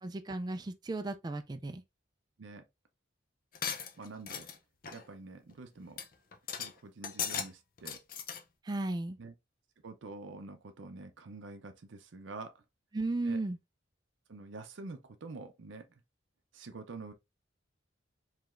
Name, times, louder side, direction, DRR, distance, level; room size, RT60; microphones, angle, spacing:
voice 1, 0.0-1.8 8.6-9.2 12.9-13.6, right 2 dB, 20° right, 0.3 m, -35 dB
sound 1, 3.6-4.6 4.8-5.1 5.5-5.6 6.0-6.1 6.3-6.7 7.0-7.5 7.8-8.4, left 7 dB, 45° left, 0.6 m, -37 dB
voice 2, 4.0-4.5 4.9-6.0 6.6-8.0 9.2-9.3 9.8-12.6 13.2-13.4 14.3-16.0 16.5-17.1, right 3 dB, 70° right, 0.6 m, -47 dB
4.8 x 3.2 x 2.5 m
head